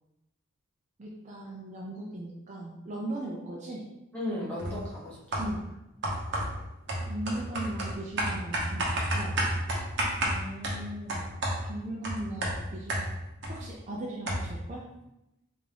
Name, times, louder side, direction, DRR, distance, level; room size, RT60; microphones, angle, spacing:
voice 1, 1.0-3.9 5.4-5.7 7.1-9.5 11.6-13.1 13.5-14.9, right 1 dB, 35° right, -3 dB, 0.4 m, -38 dB
voice 2, 4.1-5.5 10.2-11.4, left 1 dB, 5° left, -8 dB, 1.0 m, -37 dB
sound 1, 4.6-4.9 5.3-5.7 6.0-13.6 13.9-14.0 14.3-14.7, right 1 dB, 55° right, 0.9 m, -31 dB
3.4 x 2.6 x 3.3 m, 0.90 s
head